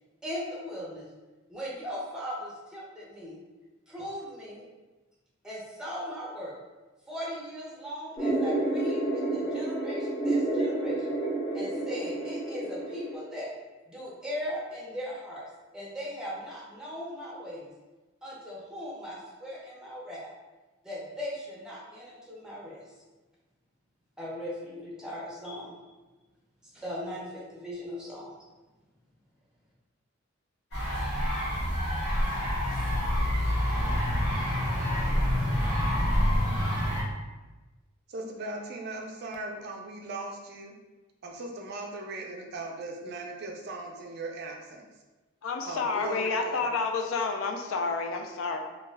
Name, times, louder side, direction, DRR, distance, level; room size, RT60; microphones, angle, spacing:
voice 1, 0.2-1.1 1.5-3.4 3.9-4.6 5.4-6.5 7.1-11.1 11.5-13.5 13.9-17.7 18.2-20.3 20.8-22.8 24.2-25.8 26.7-28.3, equal, 5° right, -6 dB, 0.6 m, -38 dB
sound 1, 8.2-13.2, right 2 dB, 25° left, 0.9 m, -29 dB
sound 2, 30.7-37.0, equal, 55° left, 1.0 m, -27 dB
voice 2, 38.1-40.7 41.2-44.9 45.7-46.7, right 2 dB, 55° right, 1 dB, 0.4 m, -38 dB
voice 3, 45.4-48.6, left 4 dB, 75° left, 5 dB, 0.3 m, -29 dB
2.2 x 2.1 x 3.2 m, 1.2 s
head